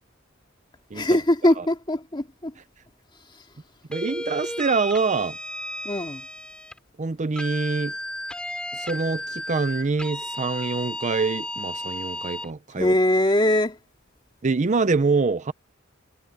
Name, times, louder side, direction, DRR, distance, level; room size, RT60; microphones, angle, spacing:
voice 1, 0.9-2.5 5.8-6.3 12.8-13.8, left 1 dB, 25° left, 2.4 m, -21 dB
sound 1, 3.9-6.8 7.4-12.5, left 1 dB, 5° left, 7.9 m, -34 dB
voice 2, 3.9-5.4 7.0-7.9 8.7-12.9 14.4-15.5, right 4 dB, 35° right, 0.6 m, -25 dB
head